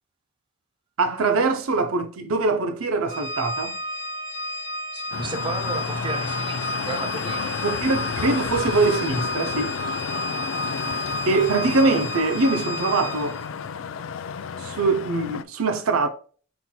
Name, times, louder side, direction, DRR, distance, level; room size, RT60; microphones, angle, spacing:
voice 1, 1.0-3.8 7.6-9.8 11.3-13.4 14.6-16.1, right 3 dB, 80° right, 0.6 m, -23 dB
Organ, 3.1-13.5, equal, 45° left, 1.5 m, -32 dB
voice 2, 4.9-7.6, right 2 dB, 25° right, 0.6 m, -33 dB
sound 1, 5.1-15.4, left 6 dB, 70° left, 0.3 m, -31 dB
5.6 x 4.2 x 2.2 m
head